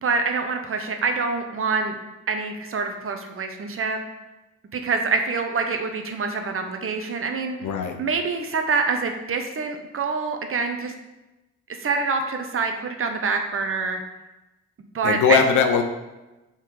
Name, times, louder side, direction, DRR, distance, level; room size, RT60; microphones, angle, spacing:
voice 1, 0.0-2.0 2.3-4.0 4.7-7.6 8.0-10.9 11.7-14.0 14.9-15.4, right 4 dB, 45° right, 5 dB, 1.1 m, -26 dB
voice 2, 7.6-8.0 15.0-15.8, left 6 dB, 75° left, 6 dB, 1.0 m, -20 dB
7.5 x 4.2 x 4.9 m, 1.0 s
cardioid pair, 90°, 30 cm